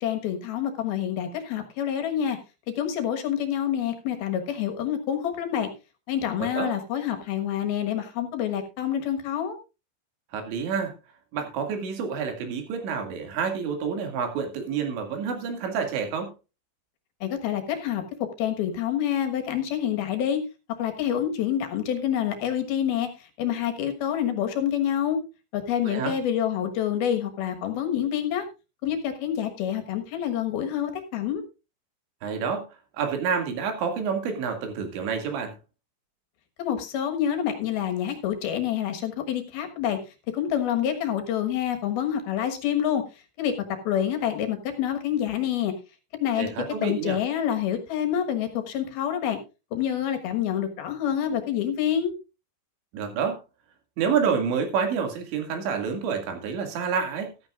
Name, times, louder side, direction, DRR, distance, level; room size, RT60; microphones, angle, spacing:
voice 1, 0.0-2.4 2.8-5.7 6.1-9.6 17.2-18.0 18.4-20.4 20.8-23.1 23.4-25.2 25.5-28.4 28.8-31.4 36.6-40.0 40.3-43.0 43.4-45.7 46.1-46.5 46.8-49.4 49.7-52.1, left 10 dB, 65° left, 6 dB, 3.0 m, -27 dB
voice 2, 6.4-6.7 10.3-10.9 11.3-16.3 25.8-26.1 32.2-32.6 33.0-35.5 46.4-47.2 52.9-53.4 54.0-57.3, right 6 dB, 90° right, 5 dB, 4.5 m, -28 dB
14.5 x 13.0 x 2.4 m, 0.29 s
omnidirectional pair, 5.0 m